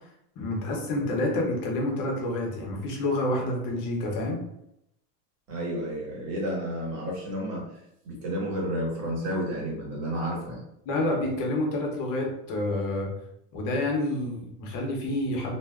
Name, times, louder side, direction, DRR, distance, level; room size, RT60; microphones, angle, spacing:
voice 1, 0.4-4.4 10.9-13.1 13.5-15.5, left 1 dB, 45° left, 0 dB, 0.7 m, -28 dB
voice 2, 5.5-7.6 8.0-10.6, equal, 80° right, -3 dB, 1.3 m, -31 dB
2.5 x 2.2 x 2.3 m, 0.79 s
supercardioid pair, 140°, 47 cm